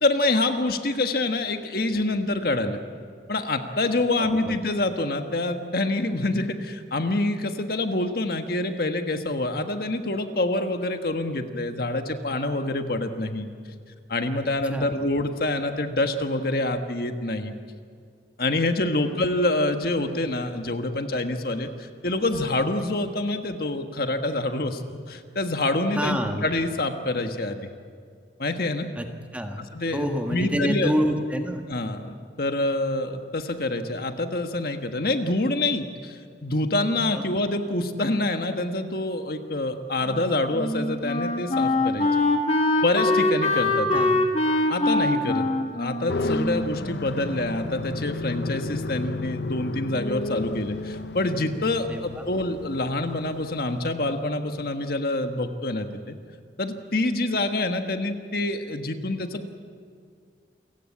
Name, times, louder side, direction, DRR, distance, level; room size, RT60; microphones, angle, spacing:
voice 1, 0.0-2.8 3.3-13.5 14.1-17.5 18.4-24.8 25.1-27.6 28.4-28.9 29.7-30.9 31.7-42.1 42.8-44.0 44.7-45.5 45.7-56.2 56.6-59.5, left 2 dB, 55° left, 6 dB, 1.5 m, -26 dB
voice 2, 4.2-4.5 14.3-14.9 25.9-26.5 29.0-29.1 29.3-29.6 29.9-31.6 37.1-37.2 43.9-44.3 51.9-52.3, equal, 10° right, 4 dB, 1.6 m, -28 dB
Wind instrument woodwind instrument, 40.1-47.4, left 2 dB, 35° left, 2.0 m, -24 dB
sound 1, 46.1-53.8, left 3 dB, 75° left, 0.7 m, -33 dB
29.0 x 16.5 x 8.6 m, 2.1 s
head